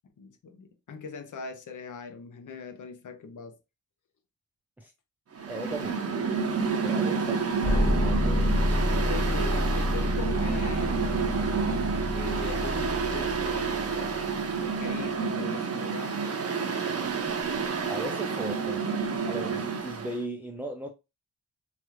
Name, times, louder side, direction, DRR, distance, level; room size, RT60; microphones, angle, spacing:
voice 1, 0.2-3.6 8.8-11.0 12.0-16.2, left 5 dB, 55° left, 0.7 m, -41 dB
Mechanical fan, 5.3-20.2, right 5 dB, 40° right, 0.6 m, -29 dB
voice 2, 5.5-6.0 6.8-8.9 17.9-18.8 19.3-20.9, right 1 dB, 5° right, 0.3 m, -38 dB
sound 1, 7.6-14.5, left 1 dB, 25° left, 1.3 m, -28 dB
3.0 x 2.4 x 3.1 m
wide cardioid pair, 90°, 36 cm